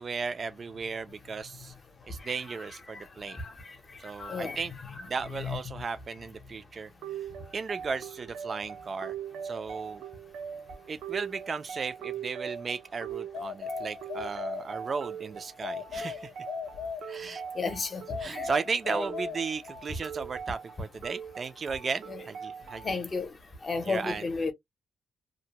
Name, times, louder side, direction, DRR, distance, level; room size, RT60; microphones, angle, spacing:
voice 1, 0.0-1.7 2.1-3.4 4.0-4.7 5.1-6.9 7.2-7.3 7.5-9.1 9.4-10.0 10.9-16.3 17.0-17.4 18.2-23.0 23.8-24.3, right 5 dB, 35° right, 0.4 m, -35 dB
voice 2, 2.9-3.7 4.2-4.6 5.4-5.6 17.5-18.5 22.1-22.2 22.8-23.3 23.6-24.5, left 4 dB, 30° left, 0.7 m, -33 dB
sound 1, 7.0-23.0, right 7 dB, 85° right, 0.5 m, -41 dB
sound 2, 13.3-15.1 15.6-17.5 18.1-19.9, left 6 dB, 70° left, 0.4 m, -38 dB
2.7 x 2.1 x 2.8 m
cardioid pair, 155°, 0 cm